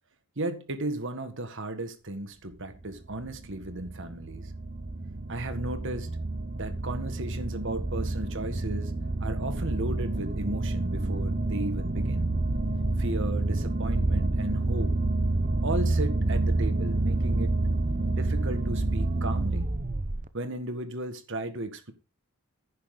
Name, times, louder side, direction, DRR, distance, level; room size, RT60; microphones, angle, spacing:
voice 1, 0.3-4.5 5.3-6.1 6.6-8.9 9.2-12.3 13.0-15.0 15.6-17.5 18.1-19.6 20.3-21.9, right 2 dB, 55° right, 1.8 m, -35 dB
sound 1, 2.7-20.3, right 2 dB, 35° right, 0.8 m, -28 dB
11.5 x 9.8 x 3.9 m
head